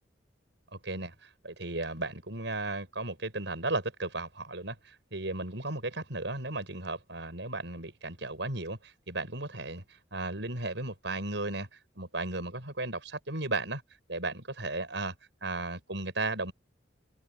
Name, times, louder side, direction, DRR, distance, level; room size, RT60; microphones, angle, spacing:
voice 1, 0.7-13.8 14.1-15.1 15.4-16.5, right 2 dB, 75° right, 6.7 m, -35 dB
open air
head